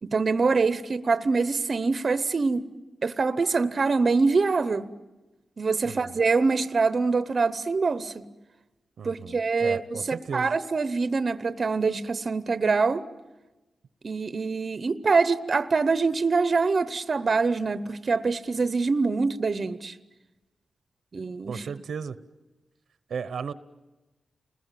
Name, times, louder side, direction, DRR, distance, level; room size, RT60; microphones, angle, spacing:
voice 1, 0.0-2.7 3.0-4.9 5.6-8.3 9.0-13.0 14.0-19.9 21.1-21.6, right 4 dB, 45° right, 0.8 m, -24 dB
voice 2, 5.8-6.2 9.0-10.5 21.5-22.2 23.1-23.5, right 6 dB, 80° right, 0.9 m, -35 dB
29.5 x 21.0 x 9.1 m
wide cardioid pair, 110°, 0 cm